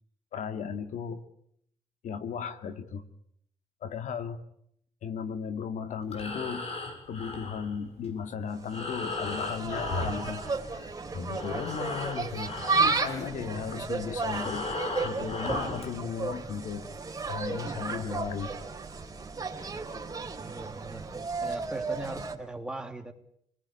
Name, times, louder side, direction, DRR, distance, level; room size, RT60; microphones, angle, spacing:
voice 1, 0.3-1.2 2.0-3.0 3.8-4.4 5.0-6.7 7.1-10.4 10.7-14.7 15.0-16.8 17.3-18.5, left 6 dB, 75° left, 9 dB, 2.3 m, -35 dB
Breathing, 6.0-11.0 11.3-15.9, left 3 dB, 50° left, 7.1 m, -37 dB
Insect, 8.5-22.4, right 4 dB, 25° right, 3.7 m, -33 dB
voice 2, 20.4-23.1, right 2 dB, 5° right, 5 dB, 3.2 m, -39 dB
29.5 x 20.0 x 8.4 m, 0.71 s
cardioid pair, 110°, 13 cm